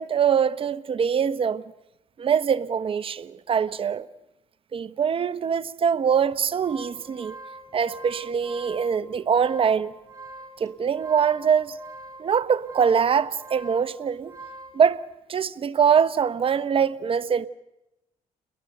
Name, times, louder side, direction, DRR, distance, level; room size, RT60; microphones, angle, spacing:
voice 1, 0.0-1.6 2.2-4.1 4.7-7.4 7.7-9.9 10.6-11.8 12.2-14.3 14.7-15.0 15.3-17.5, right 7 dB, 45° right, 1.0 m, -23 dB
sound 1, 6.3-14.8, right 2 dB, 25° right, 6.2 m, -44 dB
29.0 x 21.5 x 6.7 m
cardioid pair, 80°, 13 cm